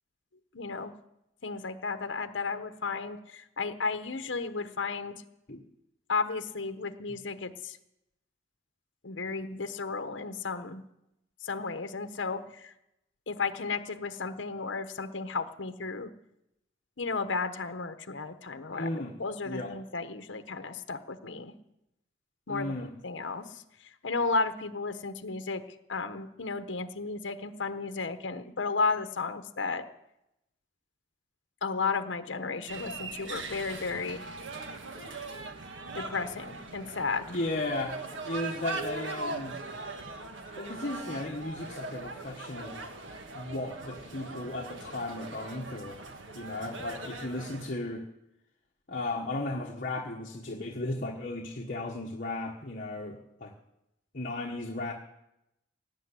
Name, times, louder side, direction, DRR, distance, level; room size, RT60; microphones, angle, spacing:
voice 1, 0.5-0.9 1.4-5.1 6.1-7.8 9.0-10.8 11.4-12.7 13.3-16.1 17.0-21.5 22.5-23.6 24.0-25.6 25.9-29.8 31.6-34.3 35.9-37.3, left 4 dB, 75° left, 9 dB, 1.0 m, -33 dB
voice 2, 18.7-19.1 19.4-19.7 22.5-22.9 37.3-38.0 38.2-39.6 40.6-42.8 43.3-46.0 46.3-48.0 48.9-53.5 54.1-54.9, left 2 dB, 45° left, 0 dB, 1.4 m, -35 dB
sound 1, 32.7-47.7, right 3 dB, 85° right, 1.6 m, -40 dB
17.5 x 7.1 x 9.8 m, 0.86 s
head